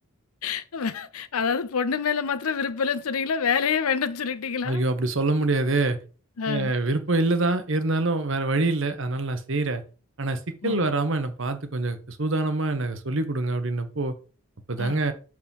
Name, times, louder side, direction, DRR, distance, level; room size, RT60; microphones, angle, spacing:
voice 1, 0.4-4.8 6.4-6.7 10.6-10.9 14.8-15.0, left 6 dB, 85° left, 0.6 m, -27 dB
voice 2, 4.6-6.0 6.5-9.8 10.2-14.1 14.7-15.1, right 2 dB, 60° right, 1.0 m, -25 dB
6.2 x 4.8 x 5.4 m
head